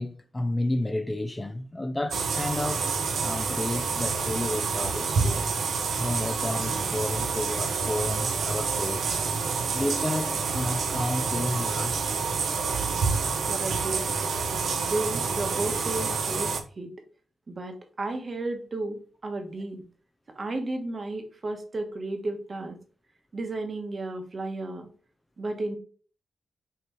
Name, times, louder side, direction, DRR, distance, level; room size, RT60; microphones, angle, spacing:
voice 1, 0.0-2.9 3.2-5.5 6.0-9.1 9.7-12.1, left 1 dB, 15° left, 0.4 m, -31 dB
sound 1, 2.1-16.6, right 5 dB, 70° right, 0.7 m, -28 dB
voice 2, 13.3-16.9 17.5-19.8 20.3-22.8 23.3-24.9 25.4-25.8, right 2 dB, 40° right, 1.0 m, -33 dB
5.6 x 3.0 x 3.0 m
wide cardioid pair, 105°, 0 cm